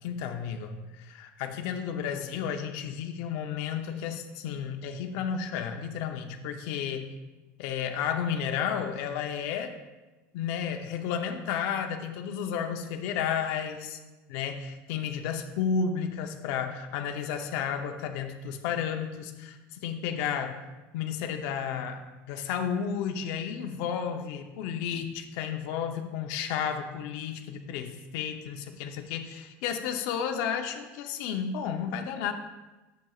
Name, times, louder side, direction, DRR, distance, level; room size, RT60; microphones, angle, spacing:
voice 1, 0.0-7.1 7.6-9.8 10.3-14.0 14.3-20.6 20.9-32.3, left 7 dB, 60° left, 6 dB, 0.8 m, -32 dB
10.5 x 7.9 x 2.4 m, 1.1 s
cardioid pair, 170°, 7 cm